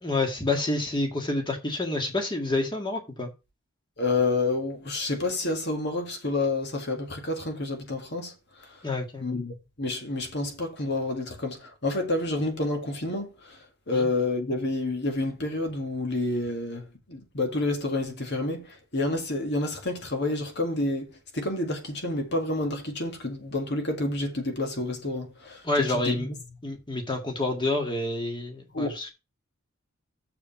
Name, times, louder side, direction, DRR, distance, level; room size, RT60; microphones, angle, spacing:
voice 1, 0.0-3.3 8.8-9.3 13.9-14.1 25.6-26.3 26.6-29.1, left 2 dB, 20° left, 1.7 m, -28 dB
voice 2, 4.0-8.8 9.2-21.1 21.3-26.4 28.7-29.1, left 2 dB, 50° left, 1.9 m, -29 dB
7.1 x 5.0 x 5.7 m
head